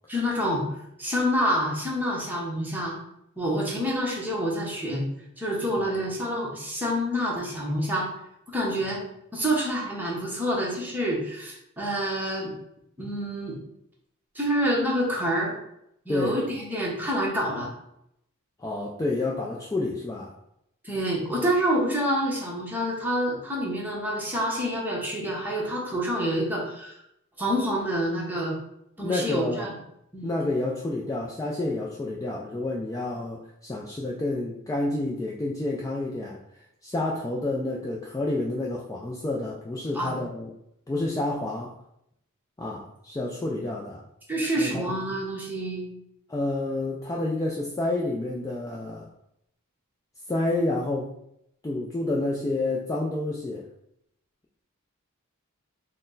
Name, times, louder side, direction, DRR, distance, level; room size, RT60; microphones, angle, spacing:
voice 1, 0.1-0.6 1.0-3.0 3.4-5.1 5.4-8.1 8.5-9.0 9.3-12.5 13.0-13.6 14.3-15.6 16.1-17.7 20.8-27.0 27.4-28.6 29.0-29.8 30.1-30.3 39.9-40.2 44.3-45.9, equal, 10° right, -4 dB, 0.9 m, -27 dB
voice 2, 16.1-16.4 18.6-20.3 29.0-29.7 30.2-36.4 36.8-40.5 40.9-41.8 42.6-44.0 44.6-44.9 46.3-49.1 50.3-51.1 51.6-53.7, left 2 dB, 15° left, -3 dB, 0.3 m, -29 dB
4.2 x 2.1 x 3.8 m, 0.78 s
head